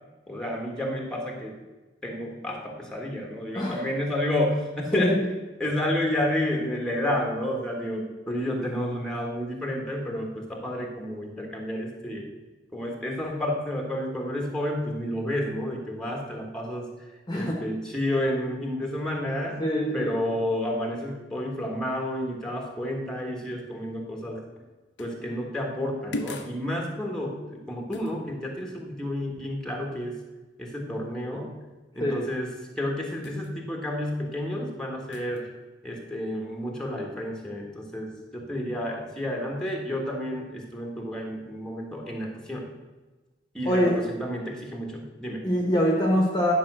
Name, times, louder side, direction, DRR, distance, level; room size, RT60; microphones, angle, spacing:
voice 1, 0.3-1.6 2.0-5.1 5.6-12.3 12.7-16.9 17.3-19.6 19.9-24.4 25.0-30.2 30.6-31.6 31.9-35.5 35.8-42.7 43.5-45.5, left 1 dB, 5° left, 0 dB, 1.6 m, -30 dB
voice 2, 17.3-17.6 19.6-20.2 32.0-32.3 43.6-44.0 45.4-46.5, equal, 20° left, -1 dB, 1.3 m, -24 dB
sound 1, 25.0-25.2 26.1-26.6 27.9-28.2 33.2-33.5 35.1-35.4, left 1 dB, 75° left, 1.0 m, -36 dB
10.5 x 5.3 x 6.2 m, 1.2 s
head